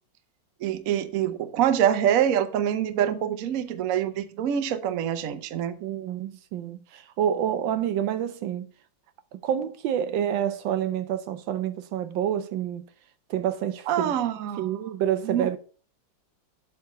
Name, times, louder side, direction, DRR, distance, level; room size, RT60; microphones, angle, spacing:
voice 1, 0.6-5.8 13.9-14.7 15.2-15.5, right 10 dB, 60° right, 0.9 m, -25 dB
voice 2, 5.8-8.7 9.4-12.8 13.3-14.1 14.6-15.6, right 10 dB, 85° right, 1.4 m, -28 dB
8.2 x 3.5 x 6.5 m
omnidirectional pair, 2.0 m